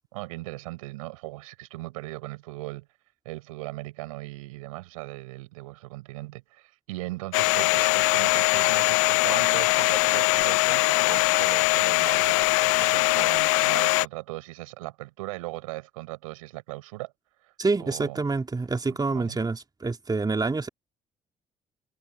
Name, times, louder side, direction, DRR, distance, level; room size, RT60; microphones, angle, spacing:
voice 1, 0.1-2.9 3.2-17.1 17.4-17.5 17.8-18.2 19.1-19.4, right 20 dB, 75° right, 7.4 m, -38 dB
Domestic sounds home sounds, 7.3-14.1, left 33 dB, 70° left, 0.8 m, -22 dB
voice 2, 17.6-20.7, right 3 dB, 20° right, 3.1 m, -27 dB
figure-of-eight pair, 50°, 18 cm